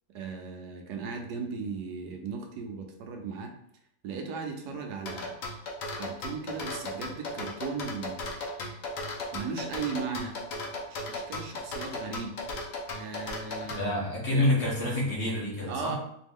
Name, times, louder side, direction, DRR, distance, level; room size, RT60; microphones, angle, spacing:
voice 1, 0.1-3.5 4.0-5.4 5.9-8.3 9.3-10.4 10.9-12.3 12.9-14.0 14.3-14.5 15.7-16.0, right 5 dB, 80° right, 4 dB, 1.2 m, -37 dB
sound 1, 5.1-13.8, left 2 dB, 60° left, 1.1 m, -36 dB
voice 2, 13.8-16.0, left 1 dB, 45° left, -6 dB, 1.5 m, -27 dB
4.3 x 2.7 x 3.6 m, 0.74 s
omnidirectional pair, 1.8 m